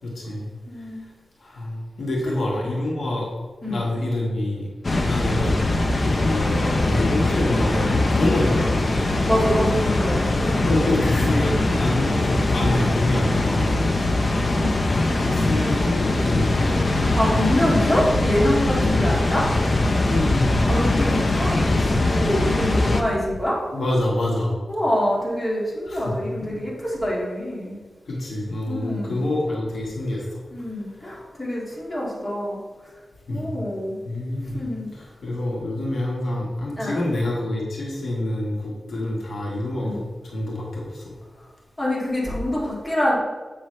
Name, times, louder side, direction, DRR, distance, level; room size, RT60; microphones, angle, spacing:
voice 1, 0.0-0.5 1.4-3.3 3.7-4.7 5.0-9.0 10.6-14.0 15.2-16.8 18.8-19.0 20.1-20.5 23.7-24.5 25.9-26.6 28.1-30.4 33.3-33.5 34.0-34.6 34.9-41.2, left 1 dB, 75° left, -3 dB, 1.5 m, -26 dB
voice 2, 0.7-1.0 3.6-3.8 4.9-5.1 9.3-10.9 14.6-14.8 17.1-19.5 20.7-23.6 24.7-27.8 28.7-29.2 30.5-32.6 33.3-34.0 34.5-34.9 36.8-37.0 39.8-40.0 41.8-43.2, left 1 dB, 20° left, -5 dB, 2.1 m, -25 dB
Water, 4.8-23.0, left 2 dB, 40° left, 0.6 m, -21 dB
7.5 x 6.0 x 3.2 m, 1.3 s
wide cardioid pair, 110°, 0 cm